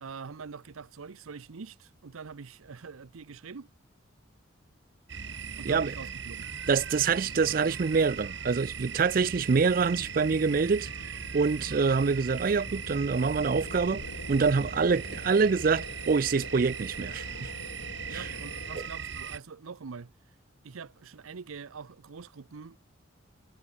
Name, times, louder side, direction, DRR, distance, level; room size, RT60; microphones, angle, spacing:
voice 1, 0.0-3.7 5.6-6.5 18.1-20.1 20.6-22.8, right 5 dB, 90° right, 0.6 m, -44 dB
sound 1, 5.1-19.4, right 6 dB, 60° right, 1.8 m, -39 dB
voice 2, 6.7-10.9 11.3-14.0 14.3-17.5 18.1-18.3, right 5 dB, 45° right, 0.4 m, -26 dB
sound 2, 9.6-18.9, left 2 dB, 70° left, 1.9 m, -46 dB
head